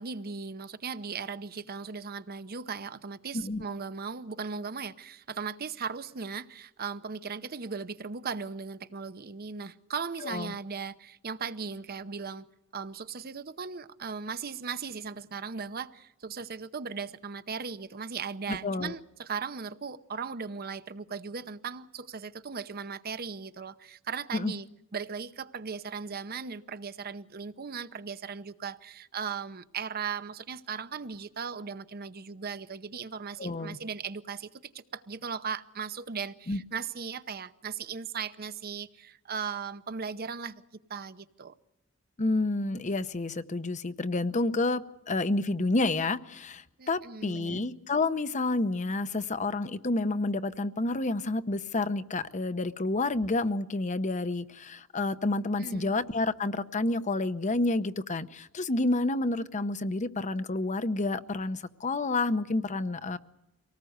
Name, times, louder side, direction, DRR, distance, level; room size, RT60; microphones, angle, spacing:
voice 1, 0.0-12.5 12.7-34.5 34.7-40.6 40.9-41.5 46.8-47.6 55.6-55.9, right 5 dB, 45° right, 0.8 m, -37 dB
voice 2, 10.2-10.5 18.5-18.9 24.3-24.5 33.4-33.8 36.5-36.6 42.2-63.2, left 2 dB, 35° left, 0.8 m, -29 dB
24.5 x 19.0 x 8.0 m
head